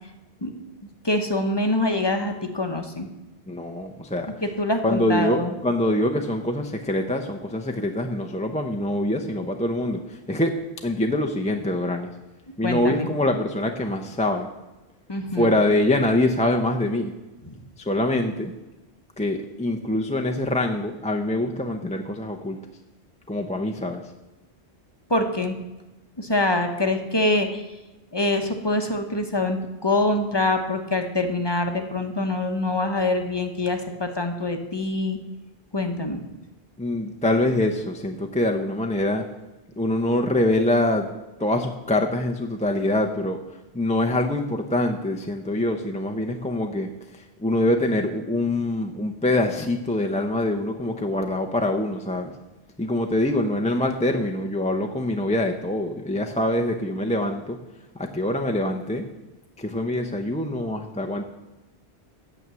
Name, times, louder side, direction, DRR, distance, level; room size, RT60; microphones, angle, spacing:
voice 1, 1.0-3.1 4.4-5.5 12.6-13.1 15.1-15.5 25.1-25.6 26.2-27.6 28.1-35.2 35.7-36.2, left 2 dB, 25° left, 5 dB, 1.0 m, -24 dB
voice 2, 3.5-4.3 4.8-10.6 10.8-12.1 12.6-14.5 15.4-17.1 17.8-18.5 19.2-22.6 23.3-24.0 36.8-39.2 39.8-41.1 41.4-43.4 43.7-52.3 52.8-57.6 57.9-59.1 59.6-61.2, left 1 dB, 10° left, 3 dB, 0.6 m, -24 dB
9.2 x 7.6 x 6.9 m, 1.1 s
omnidirectional pair, 1.1 m